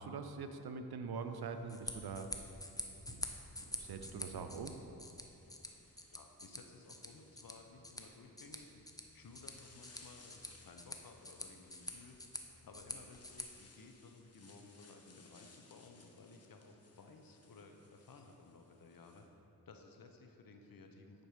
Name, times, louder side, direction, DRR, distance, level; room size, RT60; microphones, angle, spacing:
voice 1, 0.0-2.4 2.8-3.3 3.7-4.8, right 5 dB, 75° right, 8 dB, 0.6 m, -44 dB
sound 1, 1.2-2.7 4.0-4.1 4.9-19.3, left 3 dB, 40° left, 1.0 m, -65 dB
sound 2, 1.6-13.4, left 1 dB, 10° left, 0.7 m, -48 dB
voice 2, 6.1-12.2 12.6-19.3 19.7-21.3, left 3 dB, 65° left, 4 dB, 0.8 m, -57 dB
9.4 x 4.3 x 5.0 m, 2.8 s
cardioid pair, 45°, 38 cm